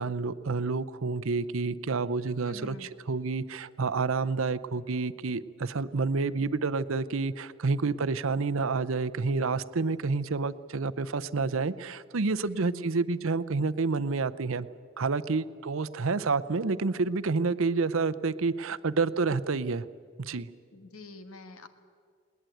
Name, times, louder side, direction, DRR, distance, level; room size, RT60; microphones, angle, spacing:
voice 1, 0.0-14.7 15.0-19.9 20.2-20.5, right 4 dB, 70° right, 14 dB, 0.7 m, -29 dB
voice 2, 2.4-2.9 12.4-12.9 20.7-21.7, left 2 dB, 85° left, 9 dB, 1.6 m, -47 dB
20.5 x 19.0 x 9.2 m, 2.2 s
head